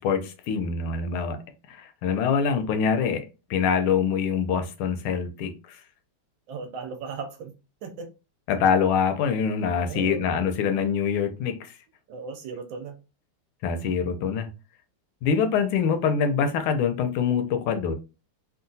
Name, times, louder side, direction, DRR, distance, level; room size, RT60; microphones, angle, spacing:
voice 1, 0.0-1.4 1.7-3.2 3.5-5.8 8.5-11.7 13.6-14.5 15.2-17.9, left 6 dB, 80° left, 1.4 m, -24 dB
voice 2, 6.5-7.5 7.8-8.1 9.6-10.3 12.1-12.9, right 4 dB, 70° right, 1.3 m, -37 dB
3.7 x 2.3 x 2.6 m
omnidirectional pair, 2.4 m